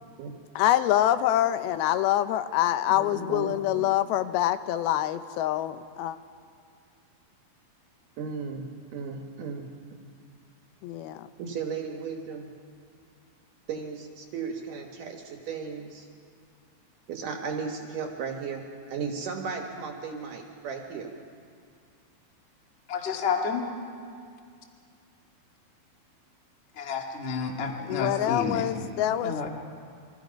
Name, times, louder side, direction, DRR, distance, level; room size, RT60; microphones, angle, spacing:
voice 1, 0.6-6.2 10.8-11.3 27.9-29.4, left 12 dB, 85° left, 12 dB, 2.7 m, -25 dB
voice 2, 2.9-3.9 8.2-9.7 11.4-12.5 13.7-16.1 17.1-18.6 18.9-21.1, right 5 dB, 65° right, 3 dB, 2.7 m, -35 dB
voice 3, 22.9-23.7 26.7-28.7 29.2-29.5, left 5 dB, 30° left, 2 dB, 1.2 m, -30 dB
28.5 x 23.5 x 5.2 m, 2.3 s
omnidirectional pair, 4.3 m